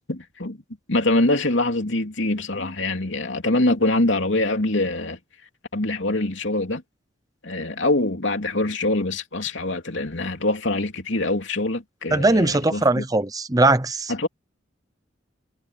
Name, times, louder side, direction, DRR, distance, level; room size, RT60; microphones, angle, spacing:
voice 1, 0.1-0.6 0.9-5.2 5.7-6.8 7.4-13.0 14.1-14.3, left 2 dB, 70° left, 3.0 m, -24 dB
voice 2, 12.1-14.1, right 2 dB, 20° right, 0.8 m, -20 dB
head